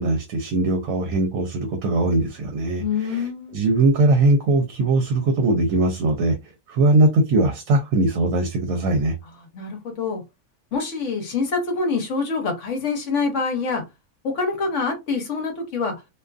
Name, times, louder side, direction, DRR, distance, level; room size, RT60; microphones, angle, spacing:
voice 1, 0.0-9.2, right 2 dB, 75° right, 1.0 m, -20 dB
voice 2, 2.8-3.6 9.5-10.2 10.7-13.8 14.2-15.9, left 4 dB, 65° left, 1.0 m, -25 dB
2.5 x 2.4 x 2.3 m
omnidirectional pair, 1.5 m